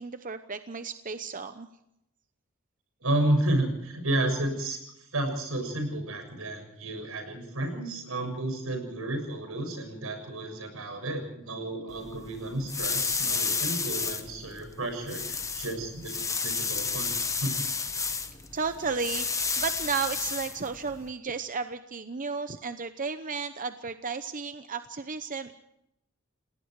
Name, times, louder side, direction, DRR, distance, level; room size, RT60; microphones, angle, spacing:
voice 1, 0.0-1.7 18.5-25.5, right 5 dB, 40° right, 10 dB, 0.8 m, -33 dB
voice 2, 3.0-17.5, right 1 dB, 80° right, 6 dB, 6.9 m, -31 dB
sound 1, 11.9-21.1, left 5 dB, 15° left, 1.1 m, -32 dB
29.5 x 18.5 x 4.8 m, 0.79 s
head